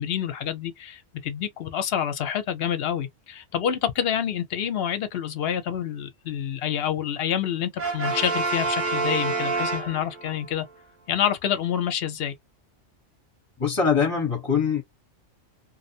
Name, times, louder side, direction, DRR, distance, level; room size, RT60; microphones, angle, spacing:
voice 1, 0.0-10.6 11.1-12.3, left 9 dB, 60° left, 0.8 m, -27 dB
Brass instrument, 7.8-10.4, right 3 dB, 85° right, 1.1 m, -27 dB
voice 2, 13.6-14.8, left 6 dB, 30° left, 0.9 m, -23 dB
2.7 x 2.0 x 2.6 m
omnidirectional pair, 1.2 m